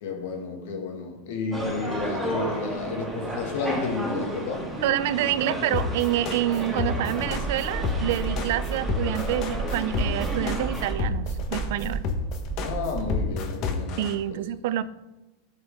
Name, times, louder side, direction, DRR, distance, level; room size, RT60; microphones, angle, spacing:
voice 1, 0.0-4.8 12.6-14.4 14.7-14.8, left 4 dB, 75° left, 2.1 m, -32 dB
sound 1, 1.5-10.9, right 1 dB, 5° right, 2.0 m, -33 dB
voice 2, 4.8-12.0 14.0-14.8, right 13 dB, 65° right, 0.5 m, -27 dB
sound 2, 5.7-14.1, left 5 dB, 45° left, 1.3 m, -29 dB
sound 3, 7.2-13.3, right 4 dB, 20° right, 0.5 m, -32 dB
13.0 x 6.6 x 3.7 m
supercardioid pair, 135°, 0 cm